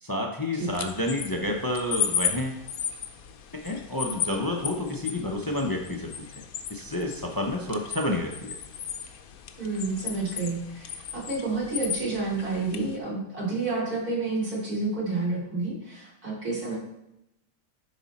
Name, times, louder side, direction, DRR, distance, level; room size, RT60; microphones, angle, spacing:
voice 1, 0.0-2.6 3.5-6.3 6.7-8.5, left 1 dB, 30° left, 2 dB, 0.4 m, -29 dB
sound 1, 0.6-13.0, left 8 dB, 75° left, 1.1 m, -35 dB
voice 2, 9.6-16.8, right 3 dB, 80° right, -6 dB, 3.5 m, -30 dB
10.5 x 4.1 x 4.1 m, 0.84 s
omnidirectional pair, 1.6 m